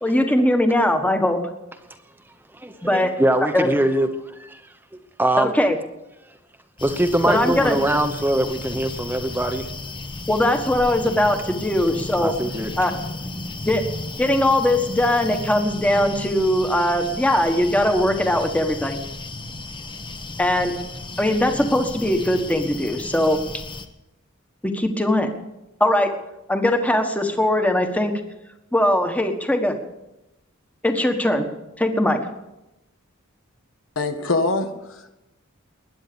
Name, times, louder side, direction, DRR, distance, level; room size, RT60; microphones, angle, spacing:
voice 1, 0.0-1.4 2.8-3.1 3.5-3.7 5.4-5.8 7.3-7.8 10.3-12.3 12.8-12.9 13.6-13.8 14.2-19.0 20.4-20.8 21.2-23.4 24.6-25.3 25.8-26.1 26.5-28.1 28.7-29.8 30.8-31.5 31.8-32.2, left 1 dB, 5° left, 5 dB, 1.4 m, -20 dB
voice 2, 2.6-4.1 4.4-4.6 5.2-5.5 6.8-9.7 12.2-12.7, right 1 dB, 10° right, 7 dB, 0.9 m, -22 dB
sound 1, 6.8-23.9, left 2 dB, 25° left, 1.0 m, -34 dB
voice 3, 33.9-35.1, left 3 dB, 70° left, 7 dB, 1.5 m, -24 dB
20.5 x 9.7 x 6.9 m, 0.94 s
head